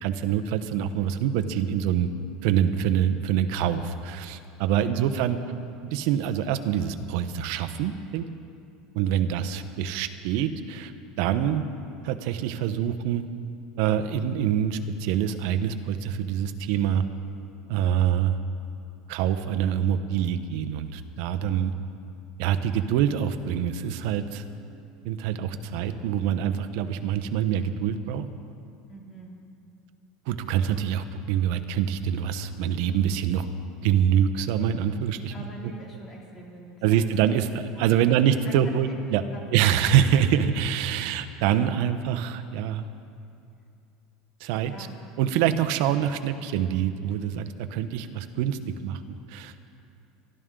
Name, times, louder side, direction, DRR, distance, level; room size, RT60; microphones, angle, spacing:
voice 1, 0.0-2.1 2.4-5.4 5.8-8.2 8.9-10.9 11.2-11.6 12.0-13.2 13.8-17.0 17.7-18.4 19.1-21.7 22.4-24.4 25.0-28.3 30.3-33.5 33.8-35.3 36.8-39.2 39.5-42.9 44.4-44.9 45.2-49.6, right 9 dB, 60° right, 10 dB, 0.9 m, -25 dB
voice 2, 4.7-5.1 28.8-29.4 35.3-37.1 37.4-39.0 39.3-39.8 44.6-45.0, right 1 dB, 25° left, -2 dB, 2.6 m, -44 dB
Keyboard (musical), 23.3-25.9, right 10 dB, 25° right, 1.9 m, -50 dB
23.5 x 12.5 x 3.8 m, 2.5 s
supercardioid pair, 160°, 0 cm